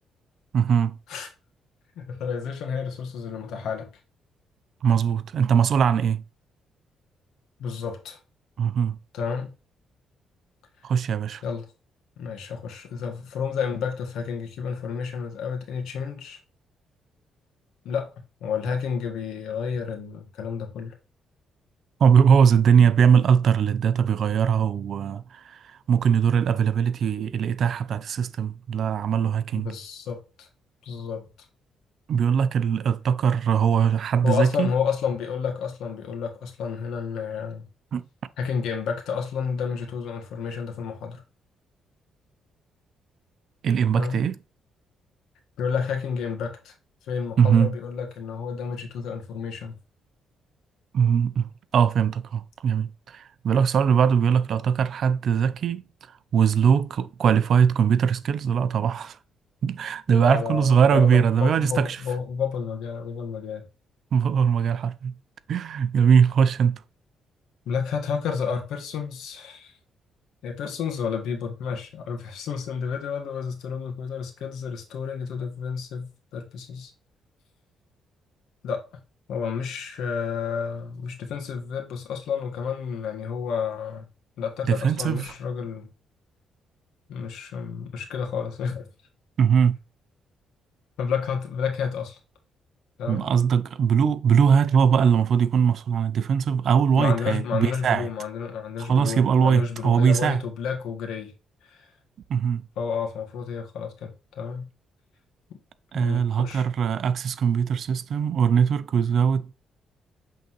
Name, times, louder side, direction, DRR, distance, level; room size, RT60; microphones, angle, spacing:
voice 1, 0.5-0.9 4.8-6.2 8.6-9.0 10.8-11.4 22.0-29.7 32.1-34.7 37.9-38.0 43.6-44.4 47.4-47.7 50.9-51.5 51.7-55.8 56.3-59.2 59.6-62.0 64.1-65.1 65.5-66.8 84.7-85.3 89.4-89.8 93.1-98.1 98.9-100.4 102.3-102.6 105.9-109.5, right 7 dB, 60° right, 0.5 m, -21 dB
voice 2, 1.9-3.9 7.6-8.2 9.1-9.5 11.4-11.7 12.2-16.4 17.8-18.1 18.4-20.9 29.5-30.5 30.8-31.2 34.2-37.7 38.4-41.2 43.9-44.2 45.6-46.7 47.1-49.8 60.1-63.6 67.6-69.7 70.4-76.9 78.6-78.8 79.3-84.1 84.4-85.9 87.1-88.9 91.0-92.2 93.0-93.3 97.0-101.3 101.6-101.9 102.8-104.7 105.9-106.6, left 6 dB, 80° left, 1.6 m, -30 dB
7.8 x 3.8 x 3.1 m
cardioid pair, 90°, 0 cm